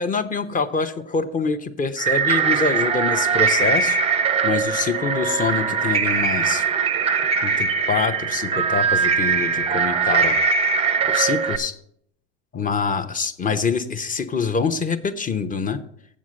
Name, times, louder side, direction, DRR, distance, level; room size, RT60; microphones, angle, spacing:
voice 1, 0.0-4.0 4.4-6.6 7.4-10.4 11.1-11.7 12.5-15.8, left 5 dB, 25° left, 10 dB, 0.7 m, -25 dB
sound 1, 2.0-11.6, right 6 dB, 15° right, 0.6 m, -21 dB
7.4 x 7.3 x 6.3 m, 0.70 s
supercardioid pair, 110°, 35 cm